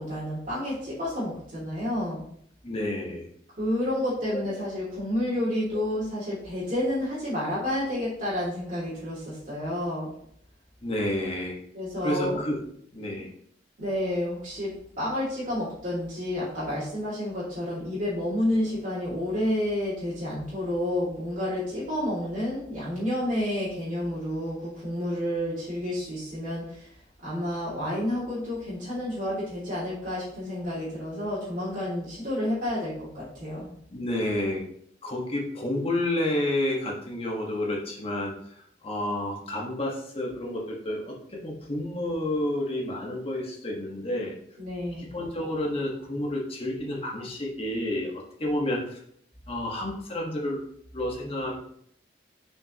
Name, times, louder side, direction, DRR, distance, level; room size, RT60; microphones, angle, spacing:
voice 1, 0.0-2.2 3.6-10.1 11.7-12.4 13.8-26.9 27.2-33.7 44.6-45.1, left 1 dB, 50° right, -10 dB, 2.4 m, -30 dB
voice 2, 2.6-3.3 4.3-4.6 10.8-11.6 12.0-12.6 12.9-13.3 33.9-34.6 35.0-44.4 45.0-49.0 49.5-50.6 50.9-51.6, left 1 dB, 35° left, -1 dB, 1.4 m, -30 dB
6.6 x 5.3 x 2.9 m, 0.66 s
head